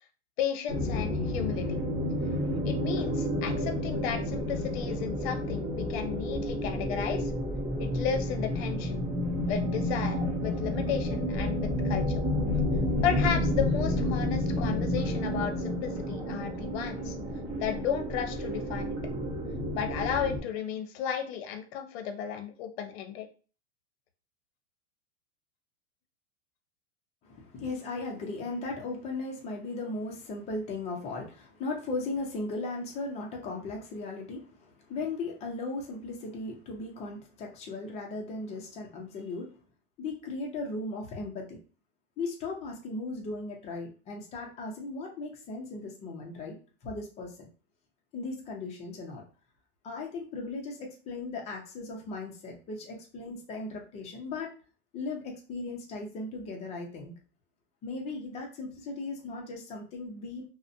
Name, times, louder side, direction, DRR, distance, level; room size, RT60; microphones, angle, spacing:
voice 1, 0.4-1.8 2.6-7.3 7.8-9.0 9.4-12.2 13.0-17.2 17.6-19.0 19.7-23.3, left 8 dB, 60° left, 7 dB, 0.6 m, -34 dB
sound 1, 0.7-20.4, left 1 dB, 30° right, 0.7 m, -30 dB
voice 2, 27.2-39.5 40.0-41.6 42.2-46.6 46.8-47.5 48.1-49.2 49.8-54.5 54.9-57.1 57.8-60.4, left 3 dB, 20° left, 0 dB, 0.4 m, -37 dB
2.5 x 2.0 x 2.5 m, 0.37 s
supercardioid pair, 155°, 35 cm